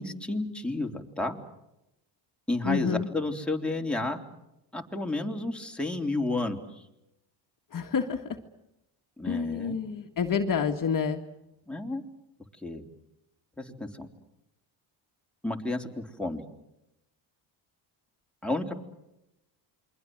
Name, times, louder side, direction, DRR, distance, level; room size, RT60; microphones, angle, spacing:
voice 1, 0.0-1.4 2.5-4.2 4.7-6.6 9.2-9.8 11.7-12.0 12.6-12.8 13.6-14.1 15.4-16.4 18.4-18.7, left 2 dB, ahead, 2 dB, 3.6 m, -31 dB
voice 2, 2.6-3.1 7.7-8.2 9.3-11.2, left 6 dB, 40° left, 5 dB, 2.0 m, -28 dB
28.0 x 23.5 x 7.9 m, 0.89 s
supercardioid pair, 85°, 48 cm